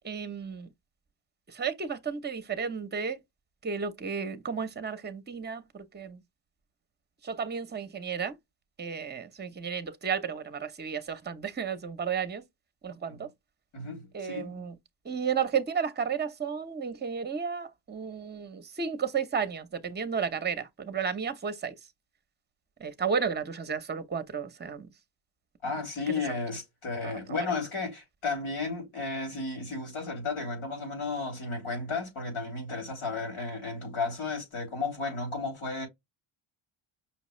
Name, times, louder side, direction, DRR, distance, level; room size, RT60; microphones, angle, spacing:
voice 1, 0.0-0.7 1.5-3.2 3.6-6.2 7.2-8.4 8.8-12.4 12.8-13.3 14.1-14.7 15.0-21.7 22.8-24.9 27.0-27.5, right 6 dB, 20° right, 0.7 m, -33 dB
voice 2, 13.7-14.7 25.6-35.9, left 3 dB, 90° left, 3.3 m, -33 dB
5.7 x 2.3 x 3.1 m
cardioid pair, 135°, 49 cm